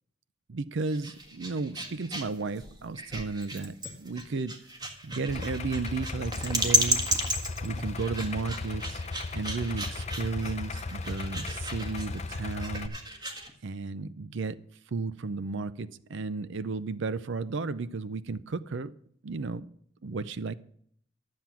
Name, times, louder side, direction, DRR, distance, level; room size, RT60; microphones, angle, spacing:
voice 1, 0.5-4.5 5.0-7.1 7.6-9.0 9.3-12.9 13.6-14.6 14.9-18.9 19.2-19.7 20.0-20.5, right 4 dB, 60° right, 15 dB, 0.5 m, -33 dB
sound 1, 0.8-13.5, equal, 20° right, 1.8 m, -33 dB
Idling, 5.3-12.9, left 3 dB, 35° left, 0.6 m, -36 dB
12.5 x 7.5 x 5.7 m, 0.63 s
head